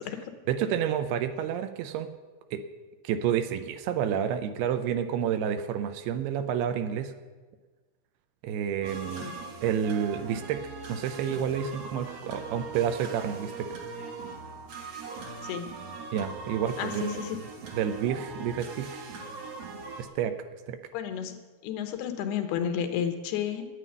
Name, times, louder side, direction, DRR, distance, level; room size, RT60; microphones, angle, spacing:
voice 1, 0.5-2.1 2.5-2.6 3.0-7.1 8.4-9.3 9.6-13.7 16.1-17.2 17.7-18.9 20.0-20.4 20.7-20.8, right 8 dB, 85° right, 8 dB, 2.7 m, -29 dB
sound 1, 8.8-20.0, right 4 dB, 60° right, 1.8 m, -41 dB
voice 2, 15.4-15.7 16.8-17.4 20.9-23.7, left 8 dB, 90° left, 8 dB, 2.9 m, -32 dB
9.9 x 9.4 x 9.2 m, 1.3 s
omnidirectional pair, 4.6 m